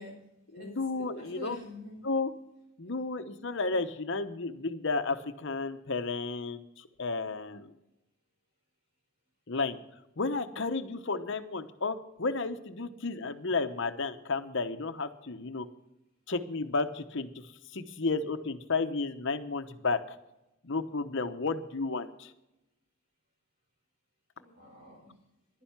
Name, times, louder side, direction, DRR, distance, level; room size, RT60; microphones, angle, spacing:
voice 1, 0.0-2.0 24.4-25.1, left 1 dB, 45° right, -3 dB, 5.0 m, -46 dB
voice 2, 0.5-1.6 2.0-2.3 2.8-7.7 9.5-9.8 10.2-15.7 16.3-17.4 17.7-20.0 20.6-22.3, left 3 dB, 60° left, 9 dB, 0.9 m, -32 dB
11.5 x 10.0 x 5.9 m, 0.90 s
head